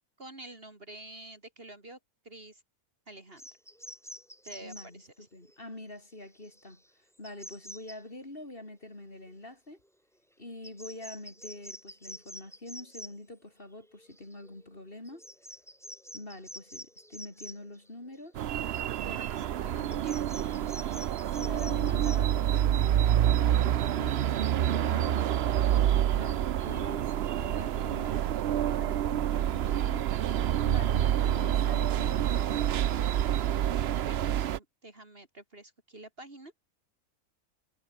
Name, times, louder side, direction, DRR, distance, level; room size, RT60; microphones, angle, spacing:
voice 1, 0.2-2.0 2.2-2.6 3.1-3.4 4.4-5.3 19.0-20.2 34.1-34.2 34.5-36.5, right 2 dB, 40° right, 3.3 m, -48 dB
sound 1, 3.4-5.0 5.4-5.6 5.9-6.0 6.3-6.9 7.2-8.0 9.3-9.4 9.8-9.9 10.6-13.1 13.9-14.8 15.1-18.2 18.6-19.1 19.4-22.2, equal, ahead, 5.3 m, -48 dB
voice 2, 4.6-9.8 10.4-15.3 16.1-18.4 19.6-20.1 21.3-25.3 26.1-30.0 30.6-33.2, left 1 dB, 35° left, 4.7 m, -45 dB
sound 2, 18.3-34.6, right 11 dB, 60° right, 0.7 m, -27 dB
omnidirectional pair, 1.6 m